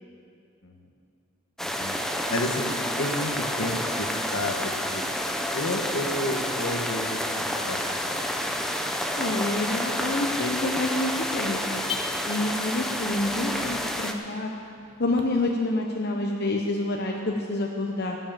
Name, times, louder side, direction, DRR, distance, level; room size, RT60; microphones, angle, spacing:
voice 1, 1.6-2.7 3.0-5.0 5.5-7.8 8.1-8.2, left 1 dB, 70° left, 3 dB, 1.4 m, -31 dB
sound 1, 1.6-14.1, equal, ahead, 0.7 m, -29 dB
Car / Alarm, 6.1-15.2, left 6 dB, 25° left, 1.1 m, -45 dB
voice 2, 9.2-11.8 12.3-14.5 15.0-18.2, left 2 dB, 55° left, 0 dB, 0.9 m, -28 dB
17.5 x 7.4 x 7.6 m, 2.4 s
head